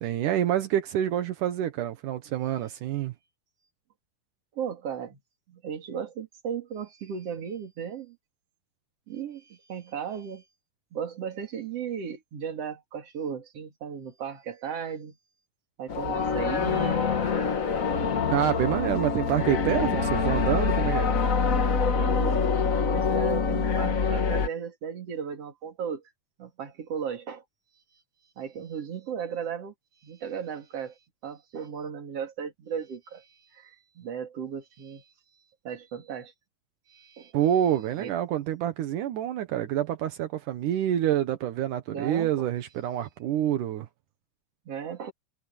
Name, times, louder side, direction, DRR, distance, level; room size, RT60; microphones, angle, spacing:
voice 1, 0.0-3.1 18.3-21.1 37.3-43.9, right 11 dB, 80° right, 2.7 m, -27 dB
voice 2, 4.5-5.2 5.5-8.2 9.1-10.4 10.9-15.2 15.8-17.0 19.9-20.1 21.9-26.0 26.4-27.4 28.4-29.7 30.0-31.0 31.2-35.0 35.6-36.3 36.9-37.4 38.0-38.1 41.9-42.5 44.7-45.1, right 7 dB, 50° right, 3.4 m, -36 dB
sound 1, 15.9-24.5, left 5 dB, 55° left, 0.8 m, -25 dB
omnidirectional pair, 3.7 m